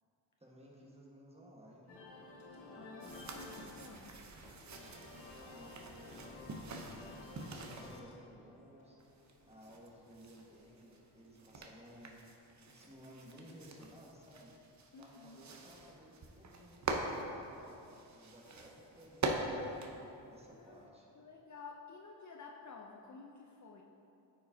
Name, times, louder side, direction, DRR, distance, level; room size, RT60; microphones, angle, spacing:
voice 1, 0.4-1.9 5.4-9.0 9.5-14.5 15.0-19.9 20.3-21.1, equal, 15° right, -3 dB, 1.5 m, -57 dB
sound 1, 1.9-11.3, left 3 dB, 80° left, 1.3 m, -54 dB
voice 2, 2.7-4.2 14.9-15.4 20.5-20.8 21.1-23.8, left 4 dB, 40° left, 1 dB, 0.6 m, -52 dB
sound 2, 3.0-8.0 9.0-20.8, right 2 dB, 40° right, 0.8 m, -44 dB
8.8 x 5.1 x 2.8 m, 2.8 s
cardioid pair, 65°, 46 cm